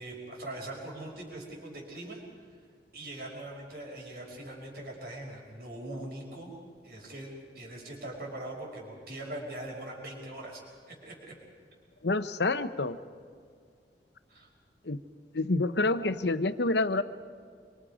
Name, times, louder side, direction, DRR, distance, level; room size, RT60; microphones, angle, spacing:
voice 1, 0.0-2.2 2.5-2.6 2.9-6.5 6.8-10.6 10.9-11.3 14.3-14.5, right 1 dB, 60° right, -1 dB, 5.4 m, -41 dB
voice 2, 12.0-13.0 14.8-15.0 15.3-17.0, left 2 dB, 80° left, 11 dB, 0.9 m, -27 dB
27.0 x 23.5 x 5.1 m, 2.1 s
head